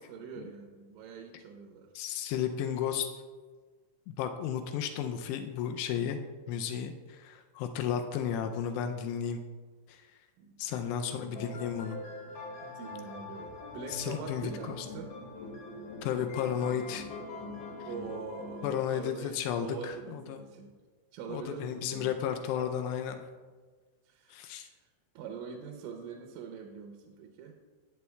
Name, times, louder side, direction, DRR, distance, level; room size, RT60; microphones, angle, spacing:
voice 1, 0.0-1.9 10.4-11.7 12.6-15.1 17.9-20.7 21.1-22.2 24.1-24.9 25.2-27.5, right 6 dB, 85° right, 3 dB, 3.2 m, -44 dB
voice 2, 2.0-3.1 4.2-6.2 6.5-9.4 9.9-10.0 10.6-12.0 13.9-14.9 16.0-17.1 18.6-20.4 21.3-23.3 24.3-24.7, left 8 dB, 90° left, 7 dB, 2.4 m, -33 dB
sound 1, 11.1-18.7, left 2 dB, 55° left, 2.6 m, -43 dB
15.0 x 10.0 x 2.3 m, 1.4 s
omnidirectional pair, 5.4 m